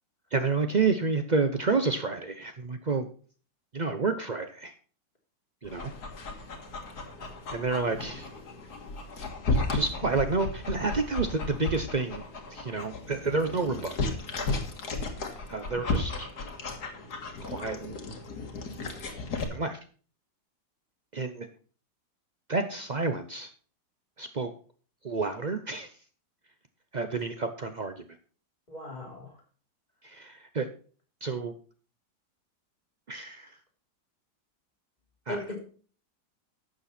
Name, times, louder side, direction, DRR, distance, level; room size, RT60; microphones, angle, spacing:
voice 1, 0.3-3.1 3.7-4.7 5.6-5.9 7.5-8.3 9.5-12.2 12.5-13.9 15.5-16.3 17.4-18.0 19.5-19.8 21.1-21.5 22.5-23.5 24.2-24.5 25.0-25.9 26.9-28.1 30.0-30.7 31.2-31.5 33.1-33.6 35.3-35.4, right 4 dB, 90° right, 8 dB, 0.3 m, -29 dB
Dog, 5.6-19.4, left 3 dB, 55° left, 2.2 m, -34 dB
voice 2, 28.7-29.4 35.3-35.6, left 1 dB, 20° left, -1 dB, 3.4 m, -38 dB
12.0 x 7.8 x 4.2 m, 0.41 s
omnidirectional pair, 2.1 m